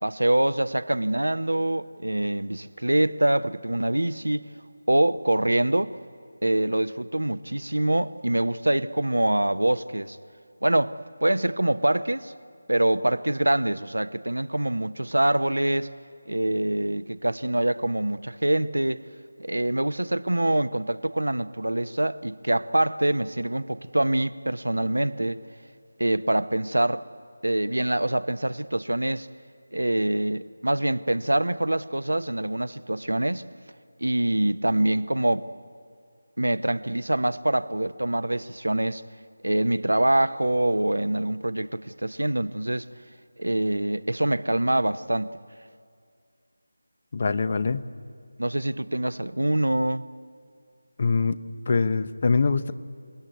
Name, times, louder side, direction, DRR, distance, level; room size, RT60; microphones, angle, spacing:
voice 1, 0.0-4.5 4.9-5.9 6.4-10.2 10.6-10.9 11.2-12.3 12.7-15.9 16.3-19.0 19.4-25.4 26.0-27.0 27.4-29.3 29.7-33.4 34.0-35.5 36.4-39.0 39.4-42.9 43.4-45.3 48.4-50.0, right 1 dB, 85° right, 0.9 m, -25 dB
voice 2, 47.1-47.9 51.0-51.4 51.7-52.7, left 4 dB, 40° left, 0.8 m, -23 dB
28.0 x 18.5 x 9.4 m
figure-of-eight pair, 165°, 0 cm